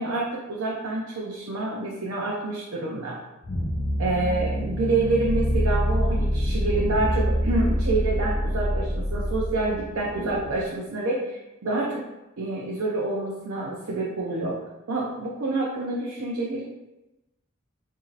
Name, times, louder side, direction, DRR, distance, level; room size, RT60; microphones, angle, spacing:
voice 1, 0.0-3.2 4.0-12.0 12.4-14.6 14.9-16.6, right 2 dB, 80° right, -3 dB, 0.5 m, -27 dB
sound 1, 3.4-10.6, equal, 35° left, 0.5 m, -26 dB
3.0 x 2.7 x 3.9 m, 1.0 s
head